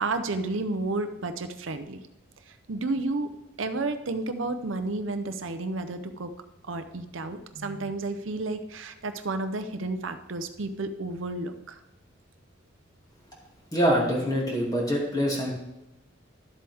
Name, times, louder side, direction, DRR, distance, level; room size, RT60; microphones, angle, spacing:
voice 1, 0.0-2.0 2.7-3.3 3.6-6.3 6.7-11.8, right 2 dB, 80° right, 8 dB, 0.7 m, -31 dB
voice 2, 13.7-15.5, equal, 20° left, -3 dB, 2.5 m, -25 dB
12.0 x 7.7 x 3.5 m, 0.92 s
head